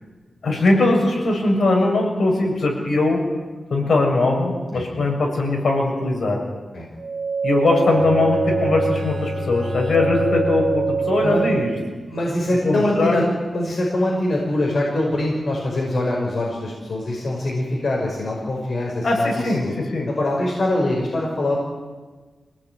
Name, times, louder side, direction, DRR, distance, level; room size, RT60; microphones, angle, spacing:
voice 1, 0.4-3.2 3.7-6.4 7.4-11.7 12.6-13.3 18.9-20.1, left 2 dB, 65° left, 0 dB, 7.0 m, -20 dB
sound 1, 7.0-11.9, right 5 dB, 75° right, 1.6 m, -25 dB
Bowed string instrument, 7.8-12.3, left 3 dB, 5° left, 2.9 m, -32 dB
voice 2, 12.1-13.2 13.5-19.7 20.1-21.6, left 1 dB, 50° left, -2 dB, 5.6 m, -23 dB
26.0 x 18.5 x 9.5 m, 1.3 s
wide cardioid pair, 180°, 0 cm